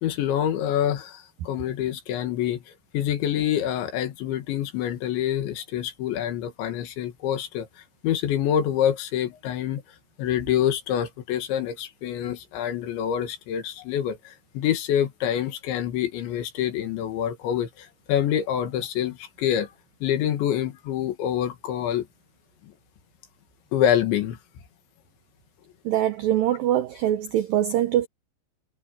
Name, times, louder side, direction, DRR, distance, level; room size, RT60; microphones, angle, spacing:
voice 1, 0.0-2.6 2.9-7.7 8.0-9.8 10.2-19.7 20.0-22.1 23.7-24.4, left 10 dB, 75° left, 4.1 m, -26 dB
voice 2, 25.9-28.1, right 12 dB, 90° right, 2.0 m, -23 dB
omnidirectional pair, 5.3 m